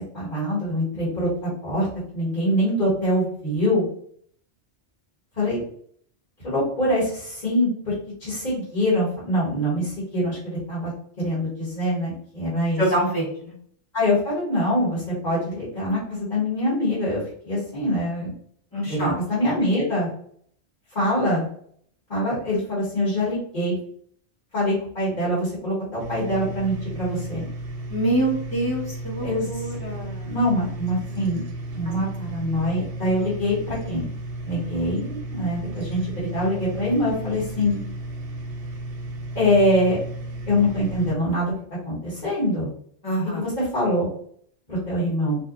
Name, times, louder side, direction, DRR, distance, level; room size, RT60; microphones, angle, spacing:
voice 1, 0.1-1.9 2.1-3.9 5.4-5.6 6.4-7.9 8.2-10.9 11.2-12.8 13.9-18.3 18.8-20.1 20.9-21.5 22.1-23.8 24.5-27.4 29.2-29.6 30.2-31.4 31.7-34.1 34.4-37.8 39.3-40.0 40.5-41.5 41.8-42.7 43.4-44.1 44.7-45.4, left 1 dB, 45° left, -10 dB, 1.4 m, -24 dB
voice 2, 12.8-13.5 18.7-19.2 27.9-30.3 43.0-43.5, right 1 dB, 20° left, -7 dB, 1.0 m, -25 dB
sound 1, 26.0-41.1, right 1 dB, 60° right, 0.8 m, -34 dB
2.7 x 2.4 x 2.4 m, 0.62 s
omnidirectional pair, 1.2 m